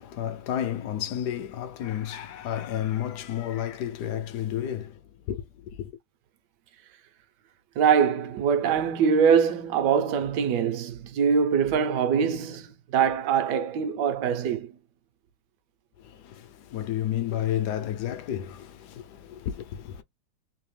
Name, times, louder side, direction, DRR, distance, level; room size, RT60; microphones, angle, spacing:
voice 1, 0.0-4.9 5.3-6.0 16.0-20.0, left 11 dB, 70° left, 1.1 m, -31 dB
voice 2, 7.8-14.7, right 7 dB, 75° right, 1.3 m, -23 dB
3.3 x 2.7 x 3.3 m
omnidirectional pair, 1.9 m